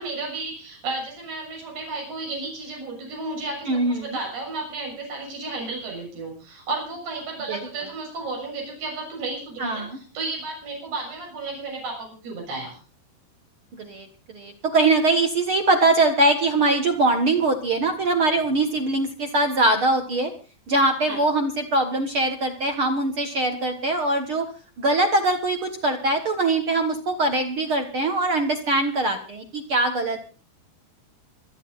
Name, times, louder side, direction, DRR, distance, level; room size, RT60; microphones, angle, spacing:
voice 1, 0.0-12.8 21.1-21.2, right 3 dB, 75° right, -1 dB, 8.8 m, -33 dB
voice 2, 3.7-4.2 7.5-7.7 9.6-10.0 13.8-20.3 20.7-24.5 24.8-30.2, right 2 dB, 60° right, 5 dB, 1.4 m, -22 dB
26.5 x 10.0 x 4.0 m, 0.37 s
omnidirectional pair, 4.6 m